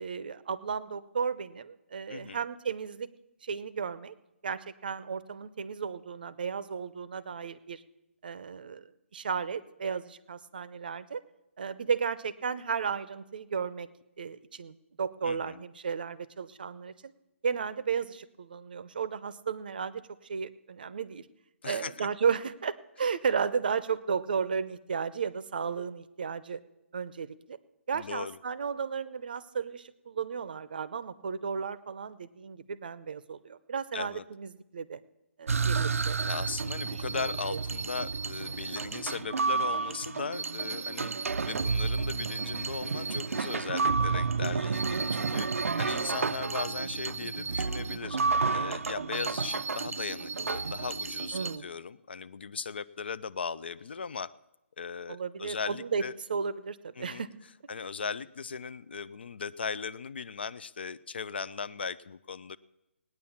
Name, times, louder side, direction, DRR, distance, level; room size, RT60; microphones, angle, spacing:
voice 1, 0.0-3.1 3.4-4.1 4.4-7.8 8.2-8.9 9.1-11.2 11.6-13.9 14.2-17.1 17.4-21.3 21.6-26.6 26.9-27.6 27.9-35.0 35.4-36.2 36.9-37.6 51.3-51.7 55.1-56.0 56.3-57.3, right 6 dB, 40° right, 16 dB, 0.7 m, -34 dB
voice 2, 2.1-2.4 15.2-15.6 21.6-22.1 27.9-28.4 33.9-34.2 36.2-54.3 54.8-56.1 57.0-57.2 57.7-62.6, left 5 dB, 50° left, 17 dB, 0.5 m, -38 dB
sound 1, 35.5-51.6, right 4 dB, 85° right, 0.5 m, -31 dB
18.5 x 9.4 x 7.2 m, 0.93 s
hypercardioid pair, 175°, 7 cm